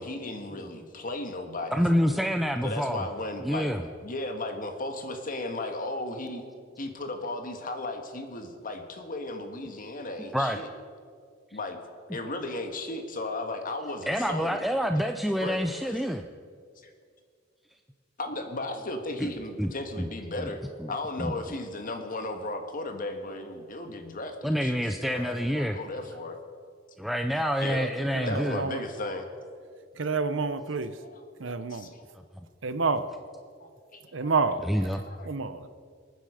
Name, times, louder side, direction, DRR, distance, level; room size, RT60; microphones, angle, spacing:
voice 1, 0.0-2.3 2.6-3.7 4.0-6.4 6.8-10.7 11.5-11.8 12.1-14.7 15.4-16.0 16.8-16.9 18.2-20.6 20.9-26.4 27.6-27.9 28.3-29.3 31.0-32.0 34.1-34.3 35.0-35.3, left 2 dB, 45° left, 5 dB, 1.7 m, -35 dB
voice 2, 1.7-3.0 3.4-3.8 10.3-10.6 14.1-16.2 19.2-19.3 19.6-19.7 20.0-20.1 20.8-20.9 21.2-21.3 24.4-25.8 27.0-28.6 34.6-35.0, equal, ahead, 5 dB, 0.5 m, -27 dB
voice 3, 27.3-27.9 28.1-28.8 30.0-31.0 31.4-31.9 32.6-33.0 34.1-34.6 35.2-35.7, right 4 dB, 70° right, 11 dB, 0.8 m, -29 dB
27.0 x 9.5 x 5.0 m, 2.1 s
head